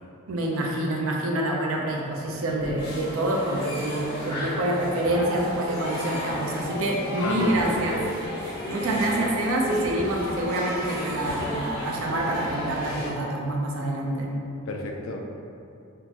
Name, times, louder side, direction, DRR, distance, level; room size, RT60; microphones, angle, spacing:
voice 1, 0.3-8.0 8.7-14.3, right 1 dB, 70° right, -1 dB, 0.5 m, -27 dB
sound 1, 2.2-12.7, equal, 15° right, 0.8 m, -41 dB
sound 2, 2.8-13.1, left 1 dB, 50° left, 1.4 m, -33 dB
voice 2, 7.2-8.0 9.1-9.3 14.7-15.3, left 2 dB, 65° left, 2 dB, 0.4 m, -33 dB
3.6 x 2.5 x 2.8 m, 2.5 s
head